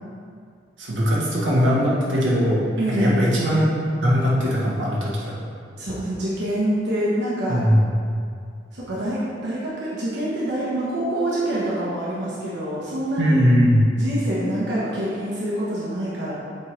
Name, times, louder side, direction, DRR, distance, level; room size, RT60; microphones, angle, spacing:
voice 1, 0.9-2.6 3.0-5.3 7.5-7.8 13.2-13.8, equal, 90° right, -6 dB, 1.6 m, -20 dB
voice 2, 2.8-3.3 5.8-7.7 8.7-13.5 13.9-16.3, right 1 dB, 65° right, -8 dB, 1.2 m, -26 dB
7.7 x 3.7 x 4.4 m, 2.2 s
head